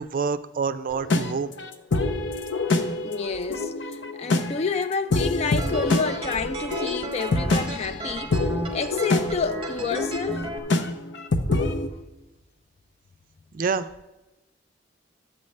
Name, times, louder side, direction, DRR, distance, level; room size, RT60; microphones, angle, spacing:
voice 1, 0.0-1.5 13.5-13.9, right 5 dB, 50° right, 0.4 m, -27 dB
sound 1, 0.9-11.9, left 2 dB, 80° left, 0.7 m, -26 dB
voice 2, 3.0-10.5, left 5 dB, 35° left, 0.3 m, -29 dB
sound 2, 5.6-10.6, right 2 dB, 30° right, 0.8 m, -35 dB
12.0 x 7.9 x 3.2 m
head